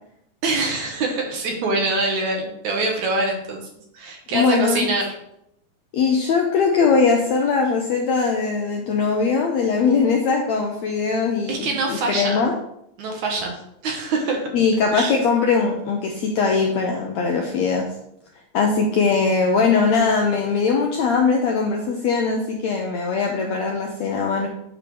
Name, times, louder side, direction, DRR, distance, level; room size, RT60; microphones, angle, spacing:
voice 1, 0.4-3.7 3.9-5.2 11.5-12.4 13.0-14.5 14.9-15.2, right 2 dB, 65° right, 1 dB, 2.3 m, -24 dB
voice 2, 4.3-4.9 5.9-12.5 14.5-17.9 18.5-24.5, left 5 dB, 75° left, 1 dB, 1.6 m, -20 dB
9.0 x 3.3 x 6.0 m, 0.77 s
omnidirectional pair, 3.9 m